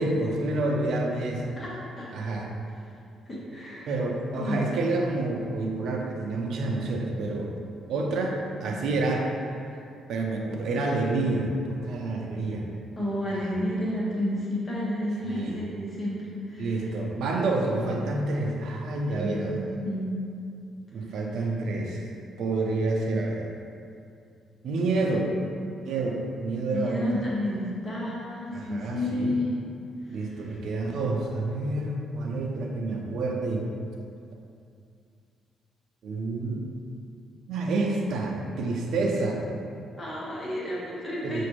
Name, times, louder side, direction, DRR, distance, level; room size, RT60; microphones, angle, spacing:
voice 1, 0.0-1.6 2.1-2.5 3.9-7.5 7.9-9.8 10.1-12.7 13.2-13.5 15.2-15.6 16.6-19.6 20.9-22.1 22.4-23.5 24.6-25.3 25.9-27.2 28.5-29.3 30.1-33.7 36.0-36.6 37.5-39.4 41.2-41.4, right 2 dB, 75° right, 0 dB, 0.5 m, -28 dB
voice 2, 1.6-2.1 3.3-3.9 4.3-4.6 13.0-16.7 19.1-20.1 26.7-29.5 30.1-30.6 40.0-41.4, left 1 dB, 25° left, -6 dB, 1.3 m, -31 dB
5.9 x 2.5 x 3.0 m, 2.4 s
cardioid pair, 90°, 0 cm